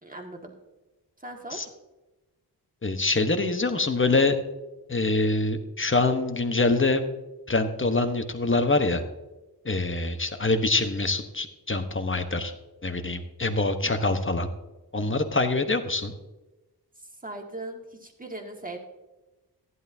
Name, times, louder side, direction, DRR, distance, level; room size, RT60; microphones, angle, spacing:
voice 1, 0.0-0.5 1.2-1.6 17.0-18.8, right 2 dB, 20° right, 1 dB, 1.9 m, -39 dB
voice 2, 2.8-4.4 4.9-7.0 7.5-9.0 9.6-12.5 12.8-14.5 14.9-16.1, left 3 dB, 30° left, 7 dB, 1.1 m, -25 dB
14.5 x 11.0 x 2.8 m, 1.1 s
wide cardioid pair, 80°, 39 cm